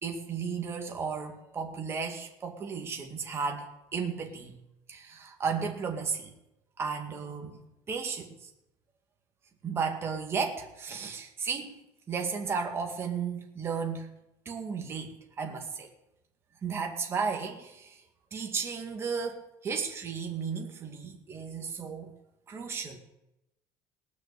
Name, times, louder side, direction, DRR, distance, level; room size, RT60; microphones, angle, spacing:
voice 1, 0.0-4.6 4.9-6.3 6.8-7.6 7.9-8.5 9.6-11.7 12.1-14.1 14.5-15.9 16.6-18.0 18.3-22.1 22.5-23.0, right 5 dB, 25° right, 2 dB, 2.1 m, -34 dB
18.5 x 6.3 x 8.3 m, 0.90 s
cardioid pair, 155°, 9 cm